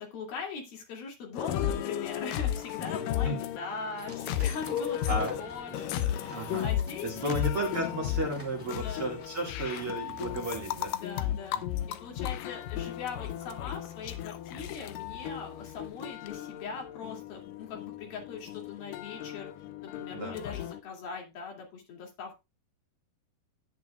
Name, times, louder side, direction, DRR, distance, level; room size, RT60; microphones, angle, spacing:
voice 1, 0.0-7.5 8.7-9.1 10.9-11.6 11.9-19.5 19.8-22.4, left 5 dB, 65° left, 0 dB, 4.4 m, -41 dB
sound 1, 1.4-20.8, left 11 dB, 80° left, 2.0 m, -34 dB
sound 2, 4.0-10.9, right 1 dB, 5° right, 1.1 m, -51 dB
voice 2, 6.3-6.7 7.0-10.9 20.1-20.4, right 1 dB, 40° right, 1 dB, 2.4 m, -33 dB
12.0 x 10.5 x 2.4 m, 0.24 s
omnidirectional pair, 4.7 m